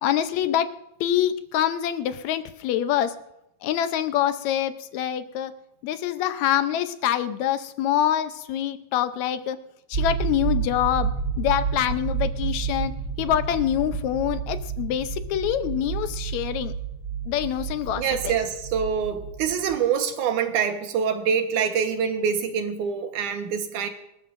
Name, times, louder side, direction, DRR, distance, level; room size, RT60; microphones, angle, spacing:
voice 1, 0.0-0.7 1.0-3.2 3.6-5.5 5.8-9.6 9.9-11.1 11.4-12.9 13.2-16.7 17.3-18.4, left 11 dB, 75° left, 11 dB, 1.9 m, -25 dB
sound 1, 9.9-19.8, right 6 dB, 35° right, 1.5 m, -30 dB
voice 2, 18.0-23.9, right 7 dB, 75° right, 6 dB, 2.7 m, -25 dB
26.0 x 13.5 x 2.6 m, 0.86 s
omnidirectional pair, 3.6 m